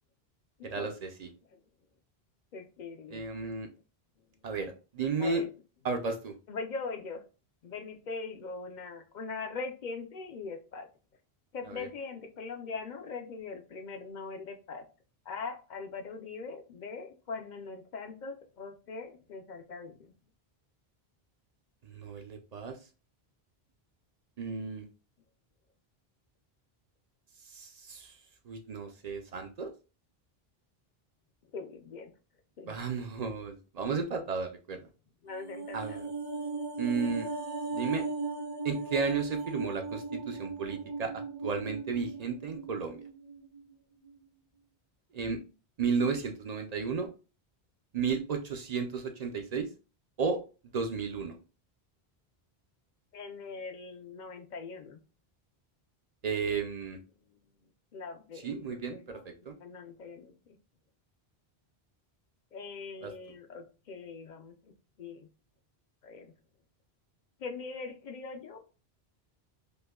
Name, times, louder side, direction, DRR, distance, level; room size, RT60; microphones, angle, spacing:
voice 1, 0.7-1.3 3.1-3.7 4.4-5.4 5.8-6.3 11.7-11.9 21.8-22.8 24.4-24.8 27.5-28.1 28.5-29.7 32.7-34.8 35.7-36.1 36.8-37.3 37.7-38.0 38.6-41.1 41.4-43.0 45.1-45.4 45.8-47.1 47.9-49.7 50.2-50.4 50.7-51.4 56.2-57.0 58.4-59.2 59.5-59.6 63.0-63.1, right 5 dB, 50° right, 5 dB, 0.5 m, -33 dB
voice 2, 2.5-3.5 5.2-5.5 6.5-7.2 7.6-10.9 11.5-14.9 15.2-20.1 31.5-32.1 32.6-32.8 35.2-36.1 53.1-55.0 57.2-57.4 57.9-60.3 62.5-65.3 66.0-66.3 67.4-68.8, left 4 dB, 55° left, 5 dB, 0.6 m, -41 dB
sound 1, 35.3-43.7 44.0-44.1, right 3 dB, 90° right, 1.7 m, -38 dB
5.2 x 2.1 x 2.2 m, 0.33 s
omnidirectional pair, 1.1 m